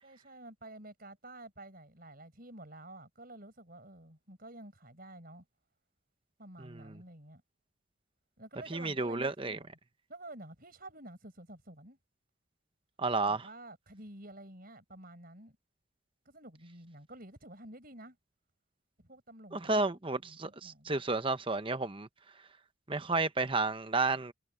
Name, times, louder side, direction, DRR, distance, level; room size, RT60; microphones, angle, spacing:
voice 1, 0.0-5.5 6.4-7.4 8.4-9.7 10.1-12.0 13.3-15.6 16.3-18.2 19.0-19.9 20.2-21.0, right 1 dB, 45° right, 5.6 m, -50 dB
voice 2, 6.6-7.0 8.7-9.6 13.0-13.5 19.5-22.1 22.9-24.3, right 3 dB, 25° right, 0.9 m, -32 dB
head